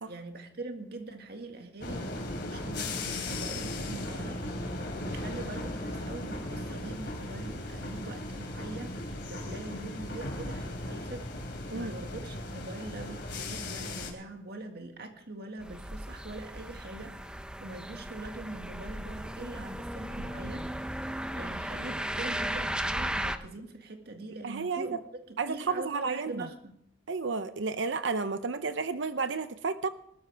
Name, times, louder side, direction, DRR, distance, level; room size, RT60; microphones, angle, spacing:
voice 1, 0.1-11.4 11.7-20.7 21.3-26.8, right 2 dB, 55° right, 1.9 m, -43 dB
sound 1, 1.8-14.1, left 1 dB, 60° left, 3.3 m, -37 dB
sound 2, 15.6-23.4, right 1 dB, 5° right, 0.6 m, -36 dB
voice 2, 24.4-25.0 25.4-26.5 27.1-29.9, right 4 dB, 75° right, 0.7 m, -32 dB
20.0 x 13.0 x 3.4 m
head